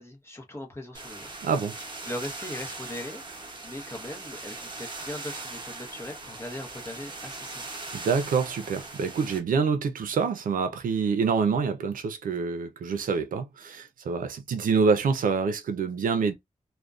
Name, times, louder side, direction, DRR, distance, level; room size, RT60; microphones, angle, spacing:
voice 1, 0.0-1.3 2.0-3.2 3.6-7.6, left 1 dB, 20° left, 0.7 m, -39 dB
sound 1, 0.9-9.4, right 3 dB, 35° right, 0.8 m, -40 dB
voice 2, 1.4-1.7 7.9-16.3, right 5 dB, 80° right, 0.5 m, -26 dB
2.5 x 2.1 x 2.3 m
wide cardioid pair, 135°, 14 cm